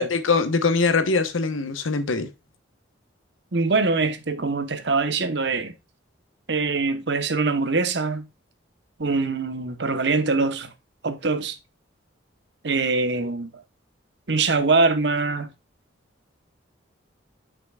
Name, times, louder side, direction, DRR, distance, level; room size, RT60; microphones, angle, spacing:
voice 1, 0.0-2.3, left 4 dB, 90° left, 1.0 m, -22 dB
voice 2, 3.5-5.7 6.5-8.3 9.0-10.7 11.0-11.6 12.6-13.5 14.3-15.5, right 3 dB, 60° right, 1.0 m, -23 dB
8.1 x 6.0 x 2.3 m
head